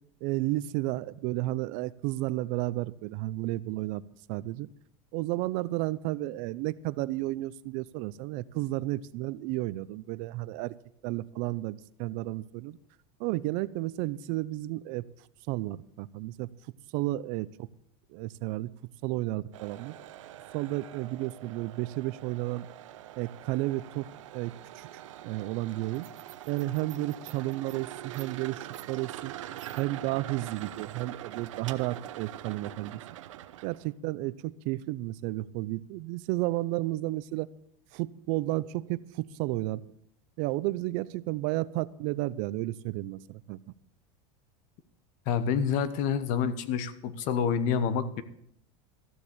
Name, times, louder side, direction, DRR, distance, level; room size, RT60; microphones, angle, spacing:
voice 1, 0.2-4.0 4.3-4.7 5.1-10.7 11.0-12.8 13.2-15.0 15.5-16.5 16.9-17.7 18.1-18.7 19.0-19.9 20.5-22.7 23.2-26.1 26.5-29.3 29.8-33.0 33.6-37.5 37.9-39.8 40.4-43.6, right 17 dB, 55° right, 18 dB, 0.6 m, -32 dB
sound 1, 19.5-33.9, right 13 dB, 85° right, 0.9 m, -44 dB
voice 2, 45.3-48.2, left 7 dB, 55° left, 13 dB, 1.2 m, -28 dB
14.0 x 7.3 x 8.0 m, 0.72 s
supercardioid pair, 125°, 16 cm